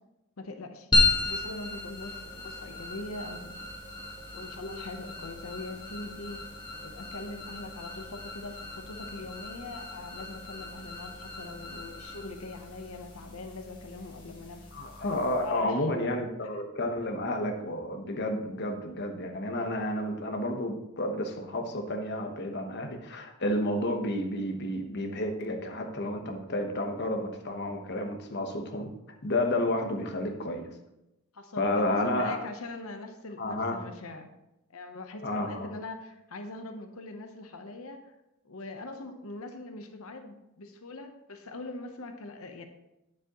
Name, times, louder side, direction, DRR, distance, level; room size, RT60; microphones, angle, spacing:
voice 1, 0.4-3.6 4.3-6.4 6.8-14.7 15.4-15.9 31.3-34.3 34.7-38.0 38.4-42.6, left 2 dB, 70° left, 6 dB, 0.8 m, -42 dB
sound 1, 0.9-15.6, left 2 dB, 20° left, 1.6 m, -34 dB
voice 2, 14.7-28.9 29.2-30.6 31.6-32.4 33.4-33.8 35.2-35.7, left 1 dB, 50° left, 4 dB, 1.1 m, -31 dB
9.4 x 7.3 x 3.0 m, 0.91 s
head